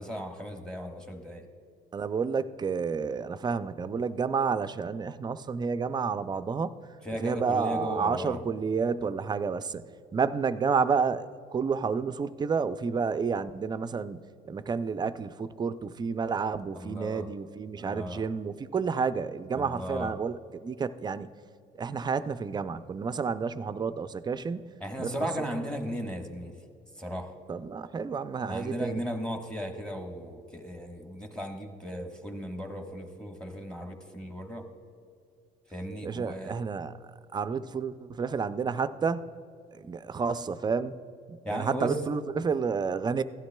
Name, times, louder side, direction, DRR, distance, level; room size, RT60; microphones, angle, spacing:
voice 1, 0.0-1.4 7.0-8.4 16.7-17.3 17.7-18.2 19.5-20.1 24.8-26.5 27.0-27.3 28.5-34.7 35.7-36.5 41.4-41.9, equal, 5° left, 3 dB, 1.2 m, -36 dB
voice 2, 1.9-6.8 7.2-9.8 10.1-21.3 21.8-25.3 27.5-29.0 36.0-37.0 37.3-39.3 39.7-41.0 41.3-43.2, right 5 dB, 25° right, 12 dB, 0.4 m, -30 dB
16.0 x 11.5 x 2.2 m, 2.3 s
cardioid pair, 110°, 17 cm